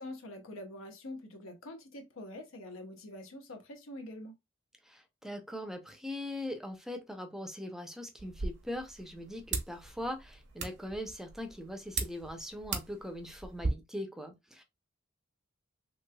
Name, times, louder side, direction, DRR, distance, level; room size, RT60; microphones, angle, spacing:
voice 1, 0.0-4.3, left 1 dB, 90° left, 0.8 m, -45 dB
voice 2, 4.9-14.6, left 1 dB, ahead, 0.5 m, -41 dB
sound 1, 8.2-13.7, right 4 dB, 60° right, 0.8 m, -39 dB
3.2 x 3.1 x 2.2 m
head